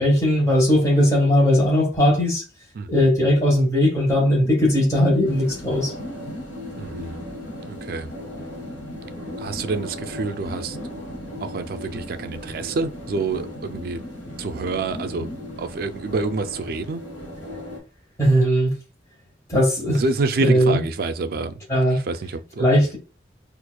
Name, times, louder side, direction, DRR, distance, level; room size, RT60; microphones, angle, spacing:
voice 1, 0.0-2.4 2.9-5.9 18.2-18.7 19.5-20.0 20.4-20.8 21.7-22.0 22.6-23.0, equal, 20° left, 1.3 m, -18 dB
sound 1, 4.1-16.8, equal, 35° left, 0.6 m, -40 dB
sound 2, 5.2-17.8, left 1 dB, 85° left, 1.1 m, -38 dB
voice 2, 6.8-7.2 7.6-8.1 9.4-10.8 11.4-14.0 14.4-15.3 15.6-17.0 19.9-21.6 21.9-22.7, right 3 dB, 50° right, 0.3 m, -27 dB
4.4 x 2.5 x 2.2 m
head